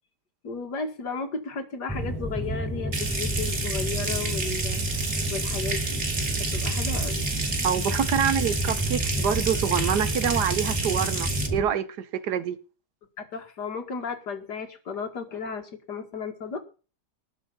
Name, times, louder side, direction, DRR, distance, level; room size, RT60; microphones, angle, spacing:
voice 1, 0.4-4.8 5.3-6.0 6.4-7.3 13.2-16.6, left 5 dB, 65° left, 2.6 m, -34 dB
sound 1, 1.9-11.6, right 1 dB, ahead, 4.4 m, -30 dB
Water tap faucet / Sink (filling or washing) / Trickle dribble, 2.9-11.5, right 3 dB, 45° right, 2.6 m, -31 dB
voice 2, 7.6-12.6, right 8 dB, 65° right, 1.7 m, -26 dB
19.5 x 6.8 x 5.5 m
omnidirectional pair, 1.9 m